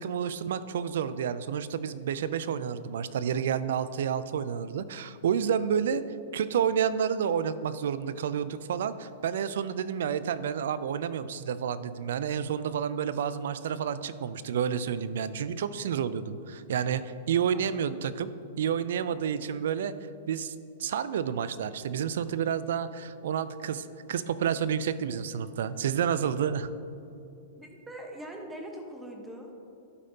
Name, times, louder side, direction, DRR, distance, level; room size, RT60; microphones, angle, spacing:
voice 1, 0.0-18.3 18.6-19.9 20.3-20.5 20.8-26.7, right 8 dB, 70° right, 14 dB, 0.4 m, -30 dB
voice 2, 17.4-17.8 27.5-29.5, right 1 dB, 10° right, 1 dB, 1.1 m, -43 dB
12.0 x 5.2 x 2.8 m, 2.6 s
hypercardioid pair, 120°, 0 cm